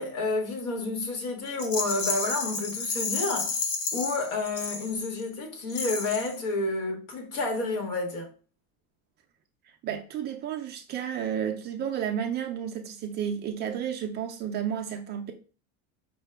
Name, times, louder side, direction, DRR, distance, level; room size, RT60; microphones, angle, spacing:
voice 1, 0.0-3.6 3.9-8.3, left 3 dB, 85° left, 1.5 m, -30 dB
Rattle, 1.6-5.2 5.7-6.4, left 4 dB, 40° left, 0.8 m, -31 dB
voice 2, 9.8-15.3, right 8 dB, 30° right, 0.3 m, -32 dB
5.5 x 2.2 x 3.3 m
cardioid pair, 170°, 36 cm